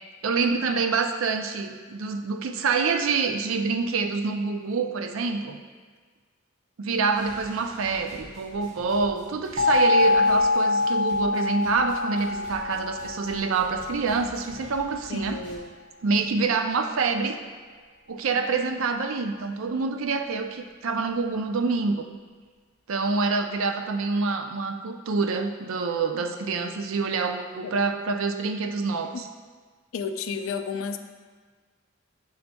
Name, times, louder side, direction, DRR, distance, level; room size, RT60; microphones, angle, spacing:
voice 1, 0.2-5.6 6.8-15.4 16.0-17.4 18.1-22.1 22.9-29.3, right 4 dB, 80° right, 6 dB, 0.5 m, -26 dB
sound 1, 7.1-15.6, equal, 60° right, 1.5 m, -48 dB
sound 2, 9.6-14.3, left 3 dB, 40° right, 0.8 m, -24 dB
voice 2, 15.1-15.7 27.6-27.7 29.1-29.2 29.9-31.0, left 5 dB, 80° left, 8 dB, 0.4 m, -32 dB
6.8 x 6.4 x 2.3 m, 1.5 s
head